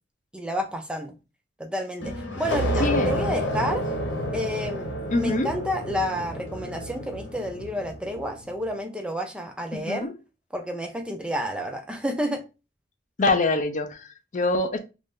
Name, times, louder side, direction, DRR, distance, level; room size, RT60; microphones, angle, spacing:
voice 1, 0.3-1.1 1.6-3.9 4.3-4.9 5.2-10.1 10.5-12.4, equal, 5° right, 5 dB, 0.5 m, -30 dB
sound 1, 2.0-8.4, equal, 75° left, 1.0 m, -30 dB
voice 2, 2.8-3.1 5.1-5.5 9.7-10.1 13.2-14.8, left 3 dB, 45° left, 7 dB, 0.5 m, -24 dB
3.1 x 2.5 x 3.6 m, 0.29 s
head